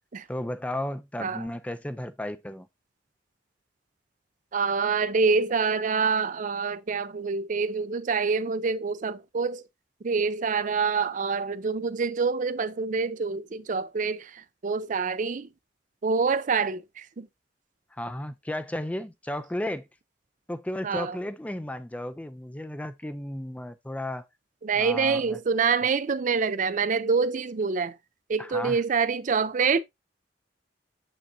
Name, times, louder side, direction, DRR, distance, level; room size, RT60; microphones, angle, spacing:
voice 1, 0.3-2.7 17.9-19.9 20.5-24.3 24.8-25.4 28.4-28.8, left 1 dB, 10° left, 0.4 m, -34 dB
voice 2, 4.5-9.6 10.0-15.5 16.0-17.3 20.8-21.2 24.6-28.0 28.3-29.8, right 5 dB, 45° right, 0.5 m, -26 dB
7.0 x 6.0 x 2.7 m
head